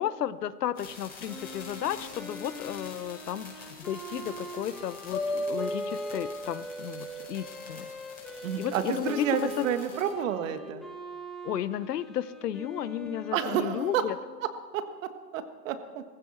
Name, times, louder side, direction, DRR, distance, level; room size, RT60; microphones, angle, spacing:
voice 1, 0.0-7.9 8.6-9.6 11.4-14.1, left 10 dB, 75° left, 16 dB, 0.9 m, -33 dB
sound 1, 0.7-10.1, left 4 dB, 20° left, 4.7 m, -48 dB
Wind instrument woodwind instrument, 1.3-14.7, equal, ahead, 1.5 m, -43 dB
sound 2, 5.1-8.2, left 1 dB, 45° left, 5.9 m, -35 dB
voice 2, 8.4-10.8 13.3-14.0 14.7-14.8 15.3-16.0, right 8 dB, 50° right, 9 dB, 1.6 m, -30 dB
18.5 x 15.5 x 4.3 m, 1.4 s
hypercardioid pair, 125°, 48 cm